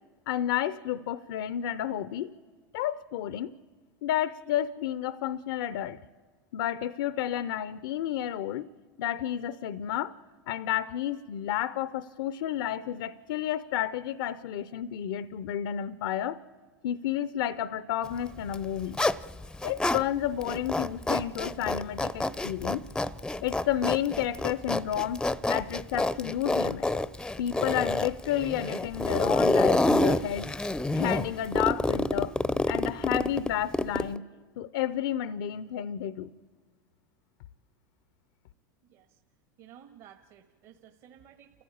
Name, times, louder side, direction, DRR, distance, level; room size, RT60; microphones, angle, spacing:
voice 1, 0.3-2.3 2.7-3.5 4.0-6.0 6.5-8.7 9.0-10.1 10.5-16.4 16.8-19.0 19.6-22.8 23.4-26.9 27.4-30.5 30.9-32.4 32.7-34.2 34.6-36.3, left 11 dB, 70° left, 15 dB, 0.6 m, -31 dB
Zipper (clothing), 18.4-20.0 20.4-34.2, left 2 dB, 5° left, 0.6 m, -28 dB
voice 2, 38.9-39.2 39.6-41.6, right 9 dB, 55° right, 5 dB, 1.7 m, -54 dB
29.5 x 14.5 x 8.6 m, 1.5 s
hypercardioid pair, 95°, 11 cm